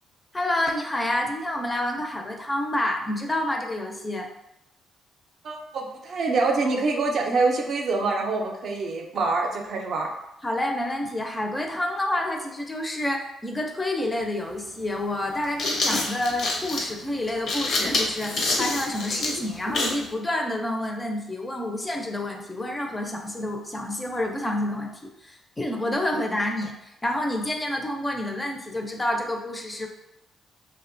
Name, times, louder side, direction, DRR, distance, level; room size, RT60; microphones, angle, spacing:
voice 1, 0.3-4.3 10.4-29.9, left 1 dB, 20° left, 2 dB, 0.4 m, -28 dB
voice 2, 5.4-10.1, right 3 dB, 60° right, 2 dB, 0.4 m, -25 dB
sound 1, 14.2-14.3 15.3-20.0, left 2 dB, 65° left, 0.6 m, -27 dB
2.7 x 2.1 x 2.5 m, 0.86 s
cardioid pair, 90°, 0 cm